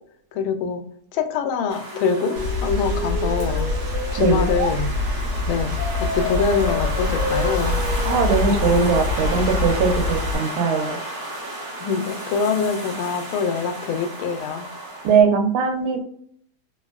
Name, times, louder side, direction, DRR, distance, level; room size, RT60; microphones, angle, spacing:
voice 1, 0.3-0.8 1.1-3.7 4.1-4.9 5.5-7.8 11.8-14.7, left 6 dB, 80° left, 7 dB, 1.4 m, -24 dB
sound 1, 1.7-15.2, right 1 dB, 20° right, 0.6 m, -33 dB
sound 2, 1.9-4.8 5.8-8.8, left 2 dB, 65° left, 0.9 m, -31 dB
Rain, 2.4-10.4, left 3 dB, 60° right, 1.3 m, -25 dB
voice 2, 8.1-11.0 15.0-16.0, right 5 dB, 90° right, 5 dB, 1.5 m, -20 dB
3.4 x 2.5 x 2.3 m, 0.65 s
omnidirectional pair, 2.2 m